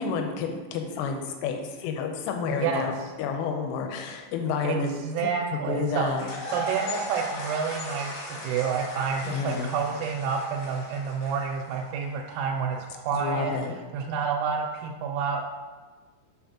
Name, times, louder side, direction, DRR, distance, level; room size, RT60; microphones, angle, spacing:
voice 1, 0.0-2.9 3.2-5.3 5.7-6.3 9.3-9.7 13.1-13.7, left 5 dB, 85° left, 4 dB, 3.2 m, -30 dB
voice 2, 2.4-2.9 4.6-6.1 6.5-13.6 13.9-15.4, right 6 dB, 85° right, -1 dB, 3.2 m, -29 dB
sound 1, 6.1-12.1, equal, 65° left, 3.0 m, -37 dB
6.9 x 5.8 x 2.8 m, 1.3 s
omnidirectional pair, 5.9 m